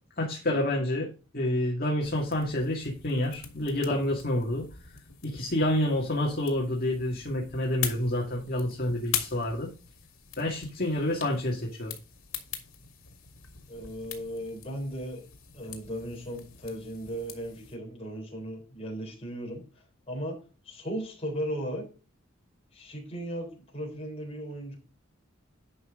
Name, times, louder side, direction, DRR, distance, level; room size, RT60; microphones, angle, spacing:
voice 1, 0.2-4.7 5.2-9.7 10.4-11.9, left 1 dB, 45° left, -1 dB, 2.2 m, -28 dB
sound 1, 2.0-17.8, left 9 dB, 90° left, 2.2 m, -42 dB
voice 2, 13.7-15.3 15.5-20.4 20.6-21.9 22.7-24.8, equal, 30° left, 0 dB, 3.7 m, -36 dB
11.0 x 5.5 x 3.8 m, 0.34 s
head